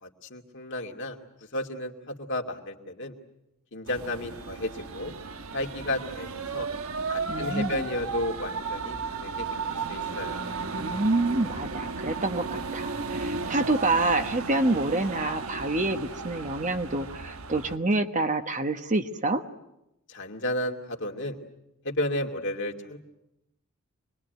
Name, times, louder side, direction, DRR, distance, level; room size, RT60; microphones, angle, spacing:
voice 1, 0.0-1.2 1.5-3.1 3.7-5.2 5.5-6.7 7.1-10.4 20.1-21.4 21.8-23.0, left 1 dB, 60° left, 3 dB, 2.5 m, -33 dB
sound 1, 3.9-17.8, right 4 dB, 80° right, 1.2 m, -34 dB
voice 2, 7.3-7.9 10.7-19.4, right 2 dB, 35° right, 7 dB, 1.2 m, -27 dB
25.5 x 21.5 x 9.3 m, 0.89 s
head